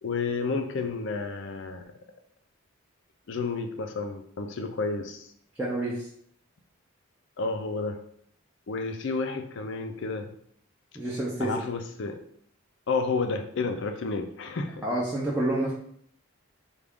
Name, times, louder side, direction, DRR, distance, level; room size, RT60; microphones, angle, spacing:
voice 1, 0.0-1.8 3.3-5.3 7.4-8.0 8.7-10.3 11.4-12.2 12.9-14.9, left 4 dB, 55° left, 6 dB, 0.4 m, -31 dB
voice 2, 5.6-6.1 10.9-11.5 14.8-15.7, right 1 dB, 10° right, -7 dB, 0.5 m, -28 dB
3.5 x 2.4 x 3.5 m, 0.65 s
head